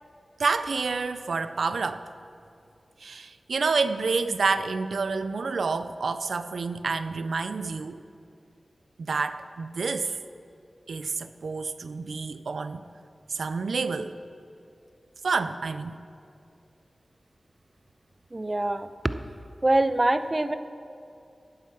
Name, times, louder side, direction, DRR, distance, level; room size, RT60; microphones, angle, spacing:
voice 1, 0.4-2.0 3.0-8.0 9.0-10.1 10.9-12.8 13.3-14.2 15.2-16.0, right 4 dB, 85° right, 12 dB, 0.4 m, -28 dB
voice 2, 18.3-19.2 19.6-20.6, right 2 dB, 30° right, 11 dB, 0.5 m, -24 dB
13.0 x 8.5 x 4.6 m, 2.6 s
cardioid pair, 50°, 0 cm